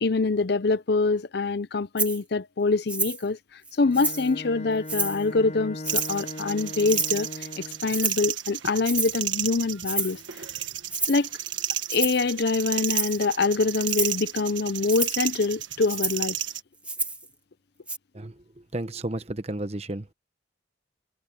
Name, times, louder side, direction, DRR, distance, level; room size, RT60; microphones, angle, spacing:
voice 1, 0.0-3.4 3.8-7.3 7.6-10.2 11.1-11.3 11.9-16.4, left 3 dB, 55° left, 0.6 m, -25 dB
Rattle (instrument), 2.0-2.2 2.9-3.2 3.6-4.3 4.9-5.2 5.8-6.2 6.9-7.3 7.9-8.3 8.8-9.2 9.8-10.2 10.9-11.2 11.9-12.3 12.8-13.2 13.8-14.2 14.9-15.2 15.9-16.3 16.8-17.3 17.9-18.0, right 2 dB, 5° right, 1.5 m, -30 dB
Bowed string instrument, 3.8-8.0, left 1 dB, 40° left, 4.3 m, -39 dB
sound 1, 5.9-16.6, right 12 dB, 80° right, 1.5 m, -32 dB
voice 2, 18.7-20.1, right 1 dB, 35° right, 1.0 m, -32 dB
head